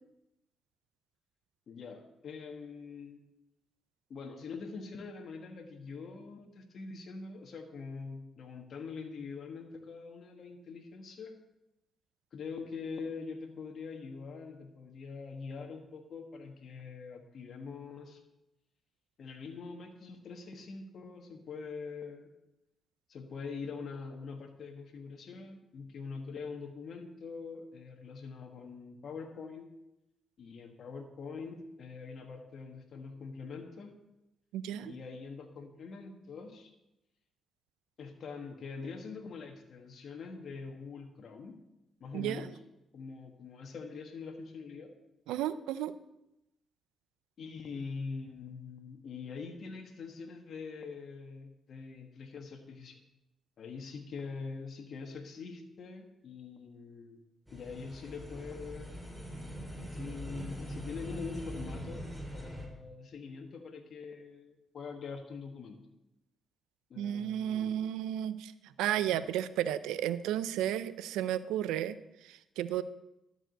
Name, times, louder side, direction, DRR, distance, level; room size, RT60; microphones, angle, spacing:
voice 1, 1.7-3.2 4.1-11.3 12.3-18.2 19.2-22.3 23.1-29.7 30.4-33.9 34.8-36.7 38.0-41.6 42.0-42.6 42.9-44.9 47.4-53.0 53.6-57.2 57.5-59.0 59.9-62.1 62.3-65.8 66.9-67.8, left 5 dB, 65° left, 4 dB, 1.5 m, -44 dB
voice 2, 34.5-35.0 42.1-42.5 45.3-45.9 67.0-72.0 72.2-72.8, right 11 dB, 90° right, 14 dB, 0.5 m, -33 dB
sound 1, 57.5-62.7, equal, ahead, 3.2 m, -42 dB
12.0 x 5.0 x 7.8 m, 0.90 s
supercardioid pair, 60°, 0 cm